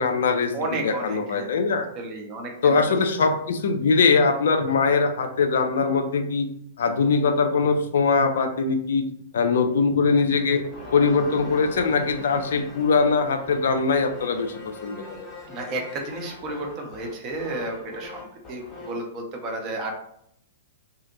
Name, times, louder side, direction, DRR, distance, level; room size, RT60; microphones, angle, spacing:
voice 1, 0.0-1.9 2.6-6.5 6.8-10.7 10.9-15.3, left 4 dB, 55° left, 7 dB, 0.4 m, -22 dB
voice 2, 0.5-1.5 2.0-2.9 15.5-19.9, right 2 dB, 30° right, 2 dB, 0.6 m, -32 dB
sound 1, 10.2-19.1, left 2 dB, 15° left, 0.9 m, -41 dB
2.7 x 2.4 x 2.6 m, 0.73 s
figure-of-eight pair, 105°, 0 cm